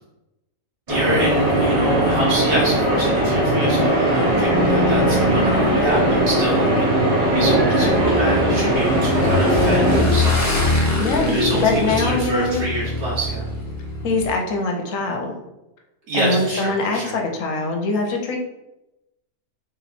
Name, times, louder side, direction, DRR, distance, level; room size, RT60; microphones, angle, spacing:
sound 1, 0.9-10.0, right 1 dB, 25° right, 0.8 m, -19 dB
voice 1, 0.9-10.5 10.9-13.5 16.1-17.2, right 1 dB, 75° right, -5 dB, 1.4 m, -27 dB
Motorcycle / Engine, 7.2-14.3, left 2 dB, 20° left, 0.4 m, -23 dB
voice 2, 11.0-12.7 14.0-15.3 16.1-18.4, left 3 dB, 60° left, 2 dB, 1.0 m, -23 dB
3.2 x 2.9 x 4.1 m, 0.95 s
omnidirectional pair, 1.7 m